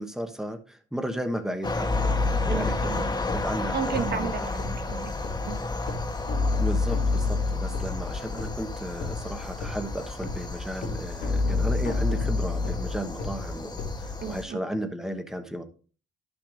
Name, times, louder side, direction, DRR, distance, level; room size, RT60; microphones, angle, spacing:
voice 1, 0.0-2.7 3.3-4.3 6.6-15.6, equal, ahead, 7 dB, 1.0 m, -34 dB
sound 1, 1.6-14.4, left 2 dB, 20° left, 1.1 m, -33 dB
sound 2, 1.9-14.3, left 3 dB, 90° left, 2.0 m, -30 dB
voice 2, 2.4-3.2 3.7-5.1 5.4-5.6 14.2-14.6, right 7 dB, 55° right, 8 dB, 1.1 m, -33 dB
11.5 x 6.1 x 2.5 m, 0.39 s
cardioid pair, 90°, 20 cm